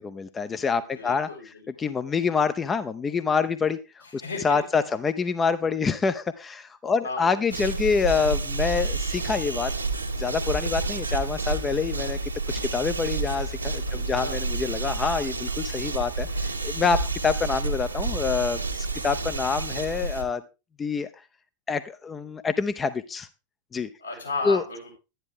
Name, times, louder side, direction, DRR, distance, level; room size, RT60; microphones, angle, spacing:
voice 1, 0.0-1.3 1.8-9.7 10.2-12.2 12.5-20.4 20.8-21.1 21.7-23.3 23.7-23.9 24.4-24.6, left 5 dB, 20° left, 11 dB, 0.6 m, -26 dB
voice 2, 0.7-1.6 4.0-4.6 7.0-7.4 13.9-14.4 24.0-24.9, left 3 dB, 80° left, -2 dB, 7.7 m, -35 dB
sound 1, 7.5-20.2, right 3 dB, 80° right, 1.6 m, -29 dB
11.5 x 10.5 x 3.7 m, 0.29 s
figure-of-eight pair, 90°, 0 cm